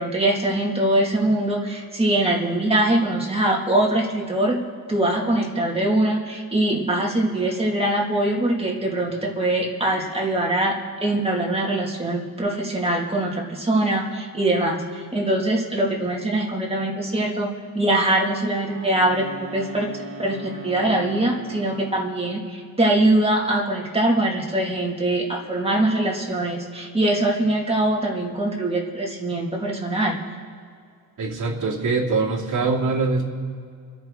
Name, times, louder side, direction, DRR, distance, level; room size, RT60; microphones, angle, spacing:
voice 1, 0.0-10.7 11.0-30.2, right 1 dB, 15° right, -2 dB, 2.2 m, -23 dB
Wind instrument woodwind instrument, 18.6-22.3, right 1 dB, 35° right, 2.9 m, -39 dB
voice 2, 31.2-33.2, right 3 dB, 55° right, -3 dB, 2.5 m, -23 dB
26.5 x 10.5 x 3.8 m, 2.2 s
wide cardioid pair, 145°, 37 cm